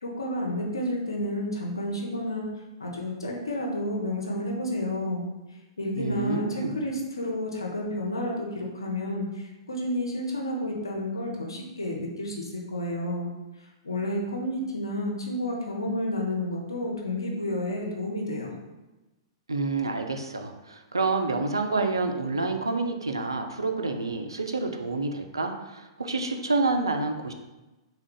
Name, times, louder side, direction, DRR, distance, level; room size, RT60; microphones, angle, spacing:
voice 1, 0.0-2.5 2.8-5.2 5.8-13.3 13.6-18.5, left 1 dB, 85° left, -1 dB, 0.6 m, -31 dB
voice 2, 6.0-6.7 19.5-27.3, right 3 dB, 85° right, 5 dB, 0.4 m, -28 dB
3.5 x 2.3 x 3.7 m, 1.1 s
figure-of-eight pair, 110°, 2 cm